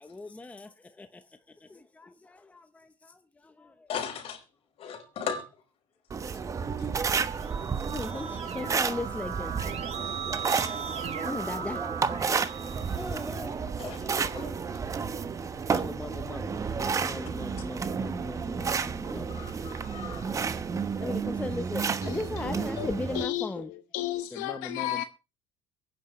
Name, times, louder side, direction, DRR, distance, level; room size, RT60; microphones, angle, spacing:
voice 1, 0.1-1.2 1.6-3.9 7.1-7.4 7.9-9.6 10.0-10.4 11.1-12.7 12.9-14.5 15.6-19.5 21.0-23.7 24.3-25.0, left 2 dB, 10° left, 0.9 m, -39 dB
voice 2, 3.9-4.4 4.8-5.4 6.8-6.9 13.8-14.6 15.7-15.8 19.0-20.3, left 7 dB, 50° left, 5.0 m, -38 dB
sound 1, 6.1-23.3, right 5 dB, 25° right, 1.0 m, -31 dB
Keyboard (musical), 7.1-13.7, right 7 dB, 55° right, 3.3 m, -39 dB
voice 3, 22.8-25.0, left 14 dB, 85° left, 1.0 m, -33 dB
23.0 x 9.8 x 3.2 m
cardioid pair, 125°, 12 cm